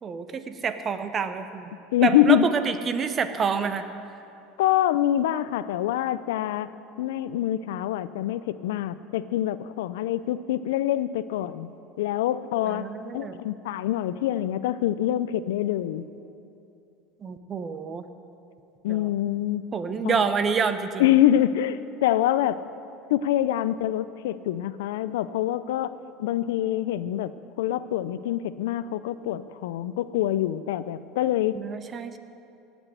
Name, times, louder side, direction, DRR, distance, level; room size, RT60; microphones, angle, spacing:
voice 1, 0.0-1.7 2.0-3.9 12.7-13.4 17.2-18.0 18.9-19.1 19.7-21.1 31.5-32.2, right 6 dB, 30° right, 10 dB, 0.8 m, -28 dB
voice 2, 1.9-2.5 4.6-6.7 7.0-12.8 13.1-16.1 18.8-19.6 20.0-20.2 21.0-22.6 23.1-27.3 27.6-31.6, left 12 dB, 85° left, 15 dB, 0.4 m, -25 dB
16.5 x 6.2 x 7.9 m, 2.7 s
supercardioid pair, 115°, 0 cm